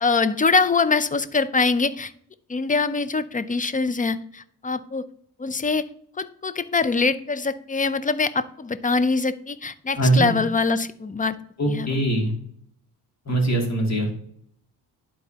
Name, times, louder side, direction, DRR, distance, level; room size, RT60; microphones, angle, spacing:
voice 1, 0.0-2.1 2.5-5.1 5.4-5.8 6.2-11.4 11.7-12.0, left 4 dB, 20° left, 14 dB, 0.5 m, -23 dB
voice 2, 10.0-10.3 11.6-12.3 13.3-14.1, right 1 dB, 40° left, -1 dB, 2.5 m, -21 dB
11.5 x 4.2 x 2.8 m, 0.65 s
cardioid pair, 75°, 40 cm